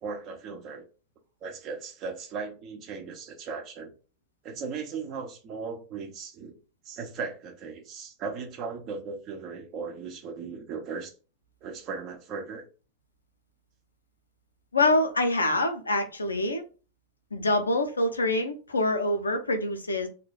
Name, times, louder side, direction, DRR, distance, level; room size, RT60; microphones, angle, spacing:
voice 1, 0.0-0.8 1.4-3.9 4.4-6.6 6.8-11.1 11.6-12.6, right 5 dB, 35° right, 0.8 m, -37 dB
voice 2, 14.7-16.6 17.3-20.1, left 2 dB, 75° left, 0.6 m, -25 dB
3.1 x 2.2 x 3.7 m
figure-of-eight pair, 90°, 0 cm